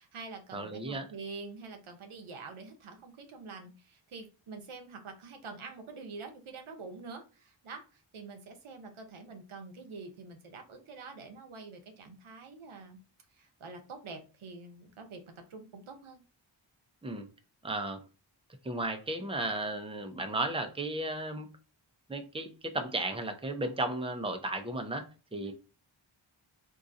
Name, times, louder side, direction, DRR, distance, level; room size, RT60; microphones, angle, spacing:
voice 1, 0.0-13.0 13.3-16.2 25.4-25.5, right 4 dB, 90° right, 5 dB, 0.8 m, -46 dB
voice 2, 0.5-1.1 17.0-17.3 17.6-18.0 18.6-21.5 22.1-25.5, right 2 dB, 10° right, 5 dB, 0.7 m, -34 dB
3.8 x 2.6 x 2.5 m, 0.32 s
cardioid pair, 40°, 48 cm